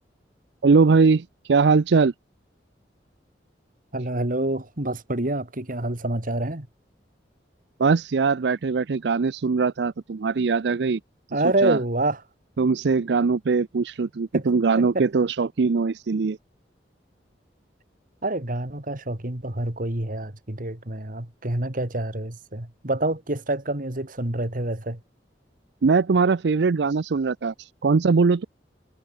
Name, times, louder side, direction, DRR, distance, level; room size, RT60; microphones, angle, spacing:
voice 1, 0.6-2.1 7.8-11.0 11.6-11.8 12.6-16.4 25.8-28.5, right 4 dB, 70° right, 0.5 m, -21 dB
voice 2, 3.9-6.7 11.3-12.2 14.3-14.4 14.8-15.1 18.2-25.0, right 2 dB, 50° right, 2.4 m, -27 dB
head